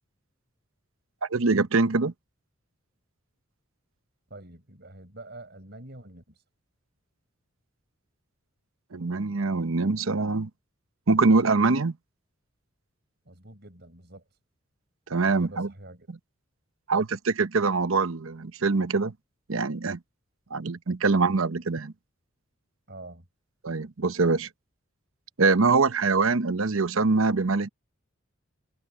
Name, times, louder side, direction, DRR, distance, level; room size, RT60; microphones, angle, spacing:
voice 1, 1.3-2.1 8.9-10.5 11.1-12.0 15.1-15.7 16.9-19.1 19.5-20.0 20.5-21.9 23.6-24.5 25.4-27.7, right 3 dB, 85° right, 0.9 m, -24 dB
voice 2, 4.3-6.4 13.3-14.2 15.3-16.1 22.9-23.3, right 2 dB, 55° right, 5.1 m, -46 dB
head